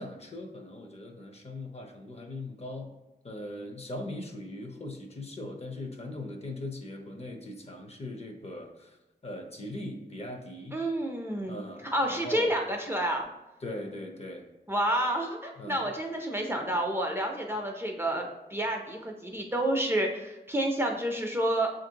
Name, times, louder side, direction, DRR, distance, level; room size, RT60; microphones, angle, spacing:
voice 1, 0.0-2.9 3.2-9.0 9.2-10.8 11.5-12.5 13.6-14.4 15.6-15.8, left 1 dB, 35° left, 3 dB, 0.6 m, -40 dB
voice 2, 10.7-11.6 11.9-13.3 14.7-18.3 18.5-21.7, right 1 dB, 15° right, 1 dB, 0.5 m, -29 dB
6.7 x 2.5 x 2.8 m, 1.0 s
wide cardioid pair, 110°, 17 cm